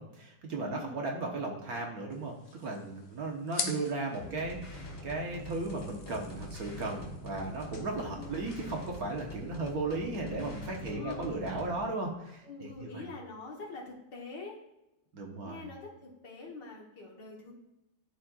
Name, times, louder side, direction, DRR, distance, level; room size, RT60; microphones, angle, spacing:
voice 1, 0.0-13.0 15.1-15.6, right 2 dB, 55° right, 0 dB, 1.4 m, -36 dB
voice 2, 0.6-1.1 8.0-8.5 10.9-11.3 12.4-14.6 15.4-17.5, left 3 dB, 70° left, -2 dB, 2.0 m, -44 dB
sound 1, 2.1-9.7, left 5 dB, 50° left, 0.7 m, -45 dB
sound 2, 4.1-11.8, left 1 dB, 35° left, 1.5 m, -44 dB
12.5 x 4.3 x 2.4 m, 0.90 s
omnidirectional pair, 2.0 m